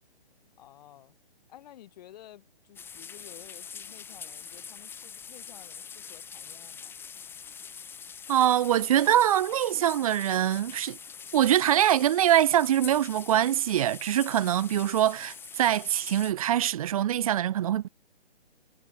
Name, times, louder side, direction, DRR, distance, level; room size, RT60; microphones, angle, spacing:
voice 1, 0.6-1.1 1.5-7.0, left 12 dB, 40° left, 5.3 m, -52 dB
sound 1, 2.7-16.3, left 7 dB, 5° left, 1.1 m, -44 dB
voice 2, 8.3-11.0 11.3-17.9, right 11 dB, 35° right, 0.7 m, -24 dB
figure-of-eight pair, 140°, 31 cm